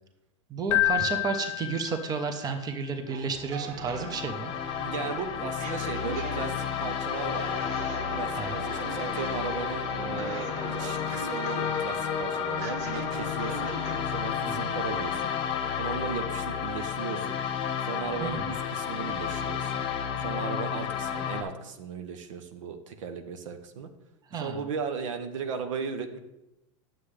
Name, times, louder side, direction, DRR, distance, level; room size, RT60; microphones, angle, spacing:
voice 1, 0.5-4.5 8.4-8.6 14.4-14.7 18.2-18.5 24.3-24.6, right 5 dB, 25° right, 7 dB, 0.8 m, -32 dB
Keyboard (musical), 0.7-2.5, left 17 dB, 80° left, 0.4 m, -28 dB
sound 1, 3.1-14.2, right 5 dB, 50° right, 1.0 m, -41 dB
sound 2, 3.7-21.4, left 8 dB, 35° left, 1.0 m, -31 dB
voice 2, 4.8-7.5 8.1-13.7 14.1-15.3 15.8-17.4 17.8-19.8 20.2-23.9 24.3-26.2, right 5 dB, 80° right, 7 dB, 0.9 m, -36 dB
9.5 x 7.5 x 3.3 m, 0.92 s
supercardioid pair, 120°, 16 cm